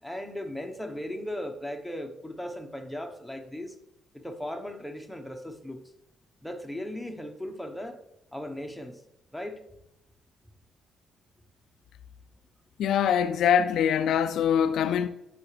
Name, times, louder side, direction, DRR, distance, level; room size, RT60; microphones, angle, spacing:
voice 1, 0.0-3.8 4.1-5.8 6.4-8.0 8.3-9.0 9.3-9.6, left 1 dB, ahead, 1.0 m, -37 dB
voice 2, 12.8-15.1, left 8 dB, 75° left, 0.3 m, -23 dB
9.7 x 5.8 x 3.3 m
cardioid pair, 90°, 0 cm